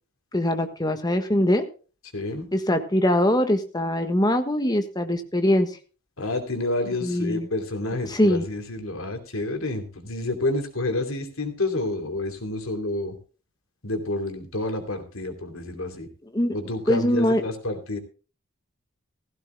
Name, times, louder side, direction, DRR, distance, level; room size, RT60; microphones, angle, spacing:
voice 1, 0.3-1.6 2.5-5.7 7.0-7.5 8.1-8.4 16.3-16.6 16.9-17.4, left 1 dB, 20° left, 7 dB, 1.4 m, -22 dB
voice 2, 2.1-2.5 6.2-13.1 13.8-16.1 16.5-18.0, left 2 dB, 85° left, 6 dB, 2.9 m, -29 dB
16.0 x 15.5 x 2.2 m, 0.36 s
head